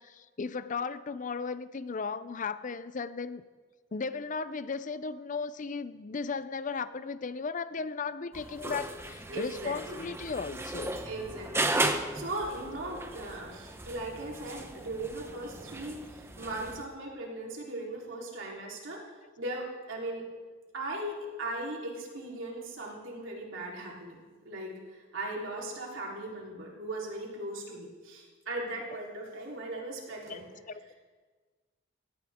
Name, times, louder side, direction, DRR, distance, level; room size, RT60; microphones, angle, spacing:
voice 1, 0.0-3.4 3.9-11.0 30.3-30.4 30.7-30.8, left 5 dB, 40° left, 14 dB, 0.5 m, -36 dB
sound 1, 8.3-16.8, right 2 dB, 15° right, 0.9 m, -36 dB
voice 2, 9.3-10.1 11.0-19.0 19.4-20.2 20.7-30.5, right 2 dB, 75° right, -3 dB, 3.7 m, -38 dB
17.5 x 17.0 x 3.6 m, 1.5 s
head